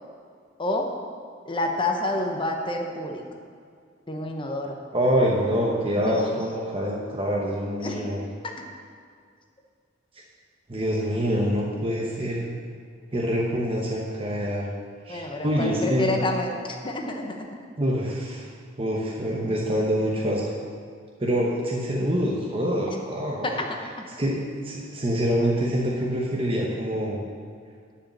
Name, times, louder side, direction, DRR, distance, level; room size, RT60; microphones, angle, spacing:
voice 1, 0.6-0.9 1.5-3.2 4.1-4.8 6.0-6.4 7.8-8.0 8.4-8.5 15.1-17.5 23.4-24.1, left 2 dB, 25° left, 2 dB, 0.8 m, -29 dB
voice 2, 4.9-8.2 10.7-12.4 13.1-14.7 15.0-16.1 17.8-18.5 18.8-20.5 21.2-23.6 24.2-27.2, equal, 30° right, -3 dB, 0.9 m, -25 dB
10.5 x 5.0 x 7.3 m, 2.1 s
head